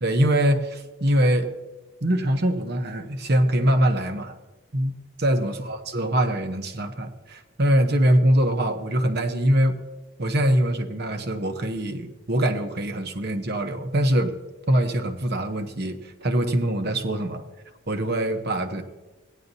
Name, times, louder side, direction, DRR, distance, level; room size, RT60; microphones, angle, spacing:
voice 1, 0.0-1.5 2.0-4.4 4.7-4.9 5.2-9.8 10.2-14.3 14.7-17.4 17.9-18.8, right 1 dB, 50° right, 7 dB, 0.9 m, -23 dB
16.0 x 10.0 x 2.7 m, 1.1 s
head